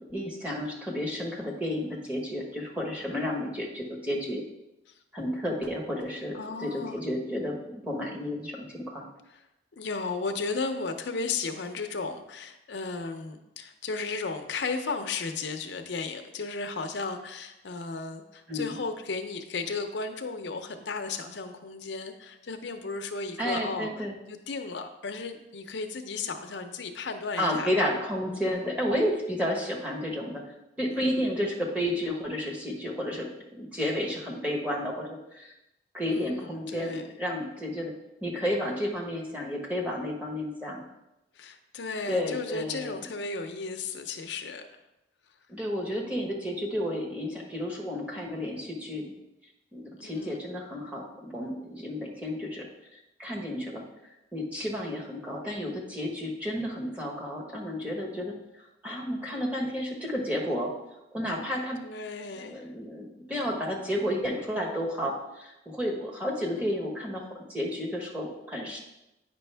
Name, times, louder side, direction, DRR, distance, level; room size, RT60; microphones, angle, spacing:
voice 1, 0.1-4.4 5.1-6.3 6.6-9.1 18.5-18.7 23.4-24.1 27.4-30.4 30.8-33.3 33.5-35.5 35.9-37.9 38.2-40.8 42.1-43.0 45.5-49.0 49.7-53.8 54.3-58.3 58.8-60.7 61.1-61.8 62.4-68.8, equal, 10° right, -2 dB, 1.2 m, -31 dB
voice 2, 6.3-7.0 9.3-9.4 9.7-23.9 24.3-27.7 30.9-31.2 36.1-37.1 41.4-44.7 50.0-50.4 61.8-62.7 66.5-66.8, left 4 dB, 75° left, 6 dB, 0.6 m, -35 dB
8.9 x 5.2 x 3.4 m, 0.91 s
head